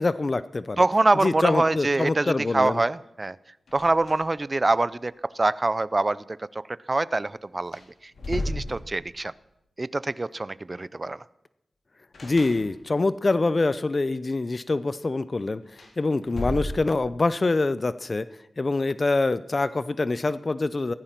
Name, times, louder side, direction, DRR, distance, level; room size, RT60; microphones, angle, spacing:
voice 1, 0.0-0.8 1.2-2.8 12.2-15.6 16.0-18.3 18.6-20.9, left 3 dB, 45° left, 15 dB, 0.6 m, -25 dB
voice 2, 0.8-3.4 3.7-7.8 8.3-9.3 9.8-11.2, right 2 dB, 35° right, 19 dB, 0.6 m, -25 dB
sound 1, 3.7-4.5 4.8-4.9 7.1-7.2 7.6-9.4 12.1-13.1 15.6-17.3, left 1 dB, 75° left, 4.2 m, -35 dB
16.0 x 14.5 x 6.0 m, 0.84 s
cardioid pair, 50°, 0 cm